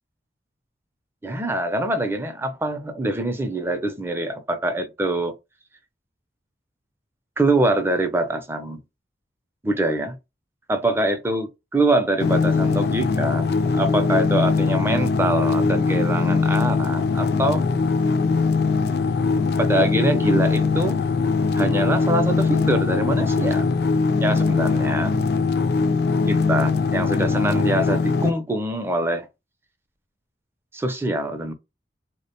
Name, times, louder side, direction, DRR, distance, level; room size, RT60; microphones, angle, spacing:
voice 1, 1.2-5.3 7.4-8.8 9.6-10.2 10.7-17.6 19.6-21.0 21.6-23.6 24.2-25.2 26.3-29.3 30.7-31.5, right 1 dB, 15° right, 0.4 m, -24 dB
sound 1, 12.2-28.3, left 4 dB, 60° left, 0.3 m, -21 dB
3.4 x 2.1 x 2.7 m
head